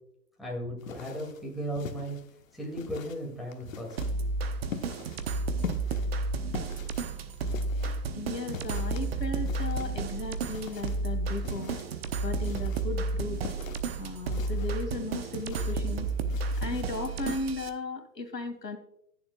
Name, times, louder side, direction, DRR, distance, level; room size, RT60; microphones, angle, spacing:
voice 1, 0.4-2.2 2.5-4.0, equal, ahead, -2 dB, 2.2 m, -36 dB
sound 1, 0.8-17.4, left 7 dB, 55° left, 1.1 m, -44 dB
sound 2, 4.0-17.7, right 3 dB, 40° right, 0.9 m, -32 dB
voice 2, 8.2-11.8 12.2-13.4 14.0-16.1 16.6-18.8, left 2 dB, 80° left, 7 dB, 2.1 m, -36 dB
20.0 x 7.1 x 2.3 m, 0.72 s
figure-of-eight pair, 130°, 48 cm